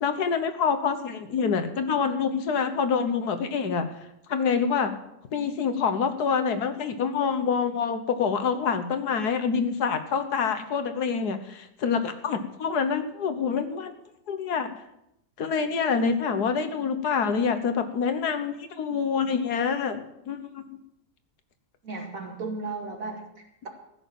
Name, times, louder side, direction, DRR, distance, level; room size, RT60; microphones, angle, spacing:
voice 1, 0.0-3.9 4.3-4.9 5.3-14.0 14.3-14.7 15.4-20.6, left 6 dB, 80° left, 9 dB, 1.7 m, -26 dB
voice 2, 21.8-23.7, right 3 dB, 60° right, 2 dB, 2.8 m, -35 dB
15.0 x 6.7 x 9.1 m, 0.81 s
omnidirectional pair, 1.7 m